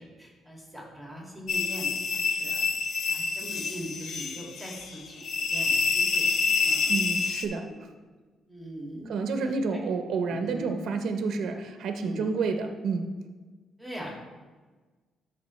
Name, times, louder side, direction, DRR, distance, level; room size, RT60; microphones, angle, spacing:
voice 1, 0.0-2.6 3.1-5.1 5.5-7.0 8.5-9.1 9.7-9.8 10.2-10.7 12.0-12.3 13.8-14.1, equal, ahead, -3 dB, 2.2 m, -41 dB
sound 1, 1.5-7.4, left 4 dB, 65° left, 0.8 m, -27 dB
voice 2, 6.9-7.9 9.1-13.1, right 4 dB, 70° right, 6 dB, 0.7 m, -29 dB
13.0 x 4.6 x 3.2 m, 1.3 s
cardioid pair, 90°, 0 cm